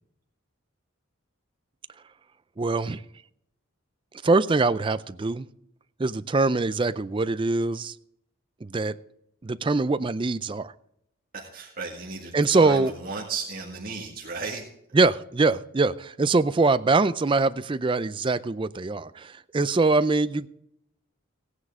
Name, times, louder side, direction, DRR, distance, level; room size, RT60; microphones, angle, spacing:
voice 1, 2.6-3.0 4.2-5.5 6.0-7.9 8.6-8.9 9.4-10.7 12.3-12.9 14.9-20.5, right 3 dB, 25° right, 14 dB, 0.4 m, -23 dB
voice 2, 11.3-14.7, right 4 dB, 45° right, -3 dB, 1.8 m, -34 dB
16.5 x 9.7 x 3.7 m, 0.76 s
head